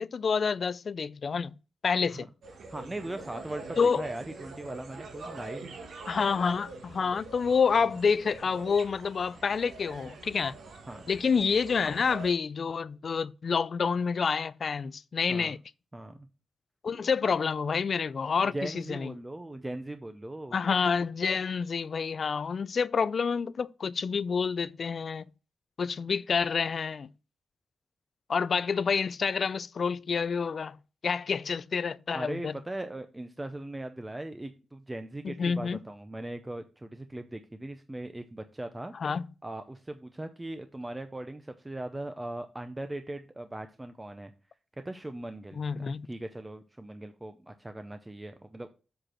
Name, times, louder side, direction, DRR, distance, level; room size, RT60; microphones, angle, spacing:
voice 1, 0.0-1.5 1.8-2.3 3.8-4.0 6.1-10.5 11.1-15.6 16.8-19.1 20.5-25.2 25.8-27.1 28.3-30.8 31.0-32.5 35.2-35.8 39.0-39.2 45.6-46.1, left 5 dB, 45° left, 0.4 m, -28 dB
sound 1, 2.4-12.3, right 3 dB, 75° right, 2.0 m, -45 dB
voice 2, 2.7-5.7 10.9-11.0 15.3-15.6 15.9-16.3 18.5-20.5 32.1-38.9 39.4-44.3 44.8-45.7 46.1-48.7, right 1 dB, 10° right, 0.5 m, -39 dB
7.9 x 4.3 x 6.3 m
wide cardioid pair, 160°, 0 cm